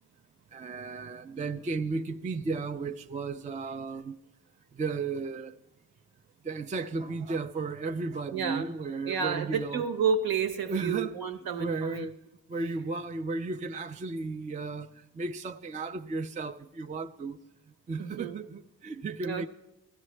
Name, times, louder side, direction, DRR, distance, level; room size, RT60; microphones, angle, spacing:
voice 1, 0.5-4.2 4.7-5.6 6.4-9.8 10.6-11.1 11.6-12.2 12.5-17.4 17.9-19.5, right 4 dB, 20° right, 0.3 m, -34 dB
voice 2, 8.3-8.7 9.0-12.1 18.0-18.5 19.2-19.5, right 6 dB, 75° right, 1.1 m, -30 dB
16.5 x 13.0 x 3.2 m
cardioid pair, 105°, 37 cm